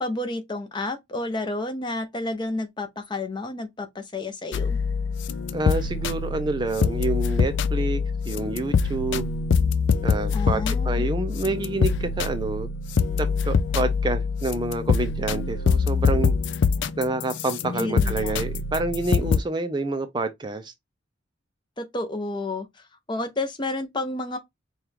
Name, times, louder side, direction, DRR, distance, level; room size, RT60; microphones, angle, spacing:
voice 1, 0.0-4.8 10.3-11.0 17.8-18.3 21.8-22.7 23.1-24.4, left 2 dB, 25° left, 0.7 m, -30 dB
sound 1, 4.5-19.4, left 5 dB, 65° left, 0.4 m, -24 dB
voice 2, 5.5-8.0 8.3-9.3 10.0-12.7 13.2-16.3 17.0-20.7, right 2 dB, 20° right, 0.4 m, -28 dB
4.5 x 2.3 x 3.3 m
head